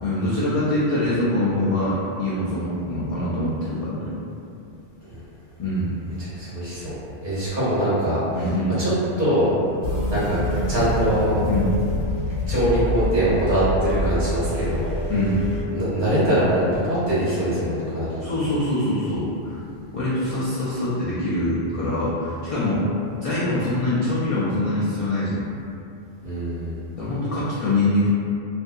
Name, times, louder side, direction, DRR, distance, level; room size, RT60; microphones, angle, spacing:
voice 1, 0.0-4.1 5.6-5.9 8.3-8.8 11.5-11.8 15.1-15.4 18.2-19.6 19.9-22.8 23.2-25.4 27.0-28.1, left 1 dB, 55° left, -10 dB, 0.4 m, -24 dB
voice 2, 6.3-6.9 7.2-8.2 8.8-8.9 9.2-9.5 10.1-10.4 10.7-11.3 12.5-14.9 15.7-18.2 26.2-26.8, right 1 dB, 50° right, -12 dB, 1.1 m, -22 dB
sound 1, 9.8-15.6, left 1 dB, 85° left, 0.9 m, -26 dB
2.6 x 2.5 x 2.2 m, 2.6 s
omnidirectional pair, 1.1 m